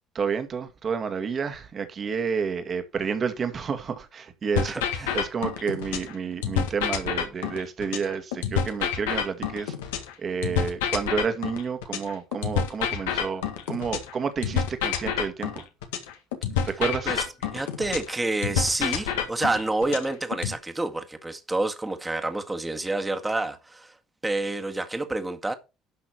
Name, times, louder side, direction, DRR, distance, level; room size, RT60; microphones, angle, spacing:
voice 1, 0.2-9.7 10.2-15.6 16.7-17.2, right 6 dB, 45° right, 2.2 m, -30 dB
sound 1, 4.5-6.1 6.4-10.1 10.4-14.1 14.4-18.1 18.4-20.5, left 8 dB, 85° left, 1.7 m, -28 dB
voice 2, 17.5-23.9 24.2-25.5, right 2 dB, 15° right, 1.8 m, -28 dB
11.5 x 6.1 x 4.5 m
hypercardioid pair, 60°, 0 cm